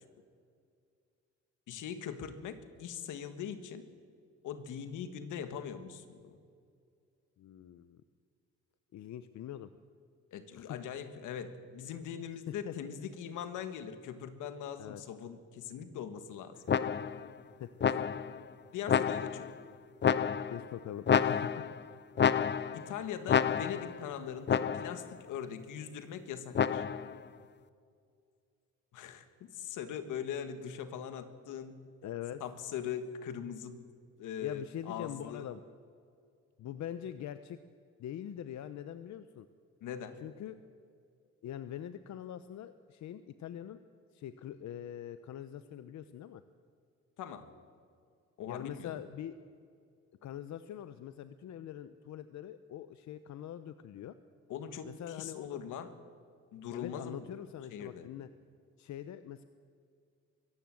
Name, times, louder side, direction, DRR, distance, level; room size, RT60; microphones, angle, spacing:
voice 1, 1.7-3.9 4.4-6.4 10.3-16.6 18.7-19.5 22.7-26.8 28.9-31.8 32.4-33.8 34.2-35.5 39.8-40.2 47.2-47.4 48.4-49.0 54.5-55.9 56.5-57.3 57.7-58.1, left 8 dB, 85° left, 10 dB, 1.7 m, -41 dB
voice 2, 7.4-8.0 8.9-9.7 10.5-10.8 12.5-12.7 14.8-15.0 17.6-17.7 20.5-21.4 32.0-32.4 34.4-35.6 36.6-37.6 38.0-39.5 40.2-40.5 41.4-43.8 44.1-46.4 48.5-49.3 50.2-54.2 54.8-55.6 56.7-58.3 58.8-59.4, left 10 dB, 70° left, 12 dB, 0.8 m, -43 dB
sound 1, 16.7-17.3 17.8-18.4 18.9-19.5 20.0-20.7 21.1-21.8 22.2-22.9 23.3-24.0 24.5-25.1 26.5-27.2, left 7 dB, 35° left, 0.7 m, -29 dB
23.5 x 15.5 x 7.7 m, 2.3 s
cardioid pair, 90°, 30 cm